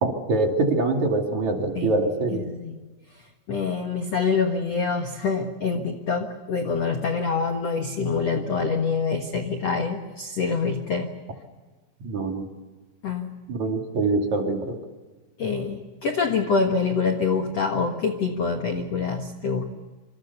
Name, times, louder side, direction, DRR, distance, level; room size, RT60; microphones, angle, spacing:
voice 1, 0.0-2.4 12.0-12.5 13.5-14.8, right 3 dB, 45° right, 3 dB, 3.2 m, -24 dB
voice 2, 2.3-2.7 3.5-11.1 13.0-13.3 15.4-19.6, left 5 dB, 60° left, 5 dB, 1.7 m, -25 dB
27.0 x 26.5 x 6.9 m, 1.3 s
omnidirectional pair, 5.2 m